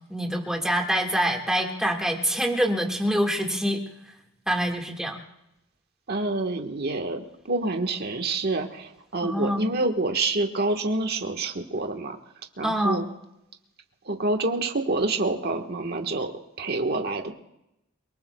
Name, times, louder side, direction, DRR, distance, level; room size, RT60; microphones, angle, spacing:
voice 1, 0.0-3.8 4.5-5.2 9.2-9.7 12.6-13.0, equal, 5° right, 1 dB, 1.7 m, -25 dB
voice 2, 6.1-12.2 12.6-13.0 14.0-16.3 16.6-17.3, right 2 dB, 45° right, 4 dB, 1.4 m, -27 dB
29.0 x 19.5 x 2.3 m, 0.86 s
head